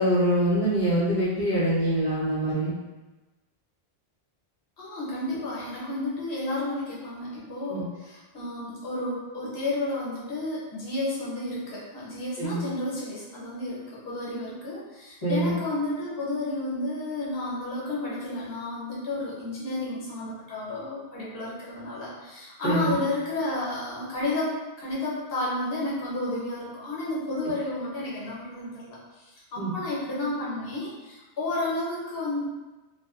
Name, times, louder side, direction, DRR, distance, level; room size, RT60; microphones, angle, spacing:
voice 1, 0.0-2.7 7.7-7.8 12.4-12.6 15.2-15.5 22.6-22.9 29.6-29.7, right 1 dB, 40° left, -14 dB, 0.7 m, -24 dB
voice 2, 4.8-24.5 24.8-32.4, left 2 dB, 60° left, -7 dB, 1.0 m, -31 dB
2.4 x 2.3 x 2.3 m, 1.1 s
omnidirectional pair, 1.1 m